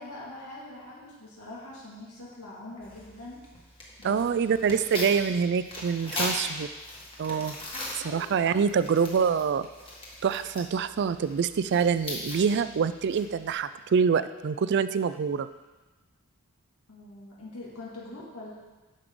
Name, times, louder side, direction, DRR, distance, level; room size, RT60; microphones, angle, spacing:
voice 1, 0.0-3.4 4.0-4.2 4.6-4.7 6.0-6.5 7.7-8.3 16.9-18.5, left 2 dB, 80° left, -6 dB, 2.1 m, -43 dB
Tearing, 2.8-13.5, left 1 dB, 25° left, 1.6 m, -39 dB
voice 2, 4.0-6.7 7.2-7.6 8.0-9.7 10.2-15.5, right 6 dB, 50° right, 13 dB, 0.3 m, -25 dB
10.5 x 6.5 x 3.7 m, 1.2 s
head